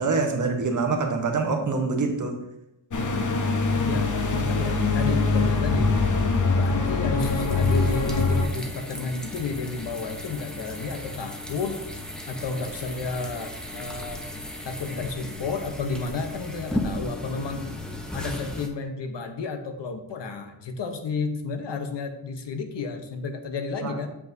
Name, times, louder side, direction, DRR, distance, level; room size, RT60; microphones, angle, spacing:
voice 1, 0.0-2.4 23.8-24.0, right 4 dB, 40° right, 3 dB, 1.0 m, -25 dB
sound 1, 2.9-8.5, left 3 dB, 40° left, 0.8 m, -23 dB
voice 2, 3.1-5.9 6.5-11.8 12.3-14.2 14.6-17.7 18.1-24.1, left 4 dB, 65° left, 6 dB, 0.9 m, -32 dB
sound 2, 7.2-18.7, left 1 dB, ahead, 0.7 m, -36 dB
8.0 x 7.2 x 2.7 m, 0.87 s
wide cardioid pair, 160°, 46 cm